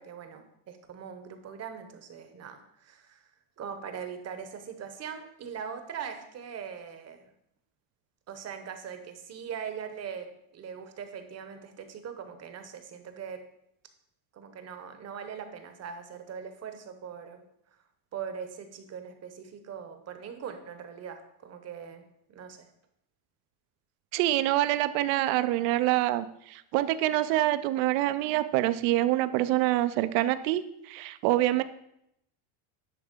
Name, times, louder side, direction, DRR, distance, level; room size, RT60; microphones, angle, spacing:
voice 1, 0.0-3.2 3.6-7.2 8.3-13.4 14.3-17.4 18.1-22.0 22.3-22.7, right 7 dB, 30° right, 8 dB, 0.9 m, -41 dB
voice 2, 24.1-30.6 30.9-31.6, right 15 dB, 75° right, 13 dB, 0.7 m, -26 dB
10.5 x 3.4 x 5.1 m, 0.77 s
cardioid pair, 140°, 49 cm